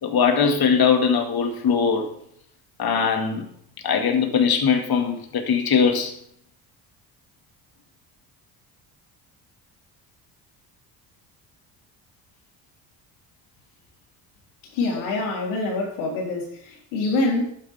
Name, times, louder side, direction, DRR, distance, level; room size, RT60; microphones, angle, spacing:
voice 1, 0.0-2.1 2.8-3.5 3.8-6.1, left 6 dB, 50° left, 2.2 m, -21 dB
voice 2, 14.7-17.5, left 2 dB, 80° left, 4.0 m, -25 dB
11.5 x 9.3 x 3.6 m
supercardioid pair, 65°, 47 cm